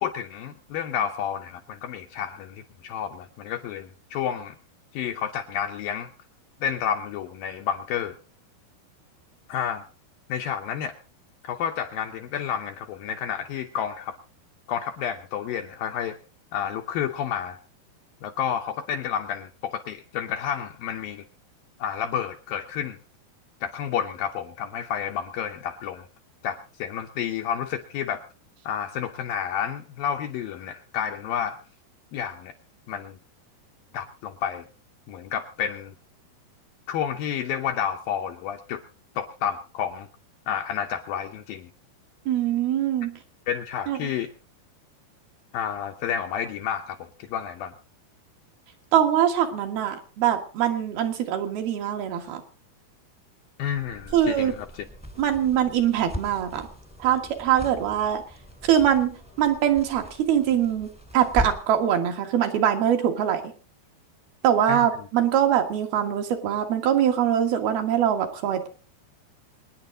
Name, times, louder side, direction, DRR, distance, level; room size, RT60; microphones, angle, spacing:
voice 1, 0.0-4.6 4.9-6.1 6.6-8.2 9.5-9.8 10.3-10.9 11.4-14.2 14.7-16.2 16.5-17.6 18.2-21.2 21.8-23.0 23.6-26.1 26.4-28.2 28.7-31.6 32.1-32.5 32.9-33.2 33.9-34.7 35.1-35.9 36.9-38.8 39.2-40.1 40.5-41.7 43.5-44.3 45.5-47.7 53.6-54.9 64.7-64.9, left 9 dB, 75° left, 5 dB, 2.2 m, -30 dB
voice 2, 42.3-43.1 43.9-44.1 48.9-52.4 54.1-54.5 55.2-56.7 57.0-58.2 58.6-63.4 64.4-68.7, right 10 dB, 65° right, 4 dB, 3.3 m, -23 dB
sound 1, 53.7-61.8, left 1 dB, 5° left, 1.1 m, -38 dB
25.0 x 10.0 x 3.8 m, 0.36 s
omnidirectional pair, 5.0 m